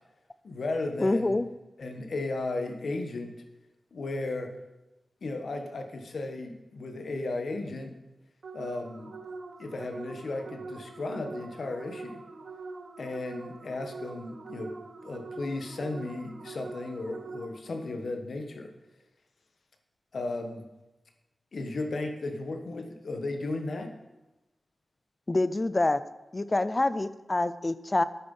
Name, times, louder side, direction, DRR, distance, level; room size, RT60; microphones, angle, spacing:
voice 1, 0.4-1.4 1.8-3.4 3.9-4.5 5.2-7.9 8.5-9.1 9.6-12.2 13.0-14.8 15.0-18.7 20.1-20.6 21.5-23.9, left 2 dB, 65° left, 5 dB, 1.2 m, -35 dB
voice 2, 1.0-1.5 25.3-26.0 26.3-28.0, left 2 dB, 25° left, 14 dB, 0.4 m, -26 dB
sound 1, 8.4-17.8, right 3 dB, 70° right, 1.1 m, -43 dB
9.5 x 8.7 x 5.4 m, 1.0 s
wide cardioid pair, 150°, 0 cm